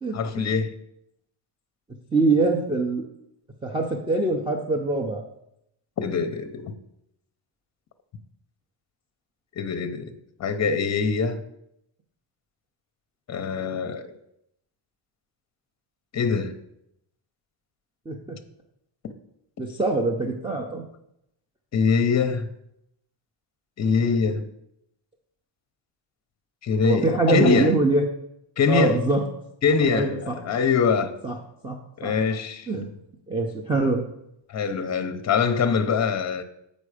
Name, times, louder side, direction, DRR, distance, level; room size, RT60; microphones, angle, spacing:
voice 1, 0.1-0.7 6.0-6.7 9.6-10.1 10.4-11.4 13.3-14.1 16.1-16.5 21.7-22.5 23.8-24.4 26.6-27.7 28.6-29.0 29.6-31.1 32.0-32.7 34.5-36.4, left 5 dB, 35° left, 0.6 m, -23 dB
voice 2, 2.1-3.1 3.6-5.2 18.1-18.2 19.6-20.8 26.8-28.0 28.7-29.2 29.9-30.3 31.2-31.3 31.6-31.8 32.0-32.1 32.7-32.9 33.3-34.0, right 3 dB, 10° right, 0.5 m, -23 dB
7.5 x 5.2 x 4.9 m
cardioid pair, 160°, 48 cm